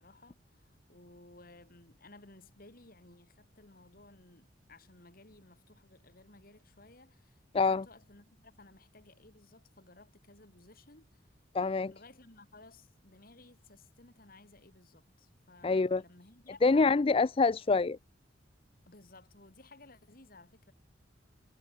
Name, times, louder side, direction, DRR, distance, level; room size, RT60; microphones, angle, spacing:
voice 1, 0.0-7.4 7.7-11.3 11.9-16.9 18.9-20.7, left 2 dB, 50° left, 3.4 m, -57 dB
voice 2, 7.5-7.8 11.5-11.9 15.6-16.0 16.6-18.0, left 4 dB, 30° left, 0.4 m, -26 dB
head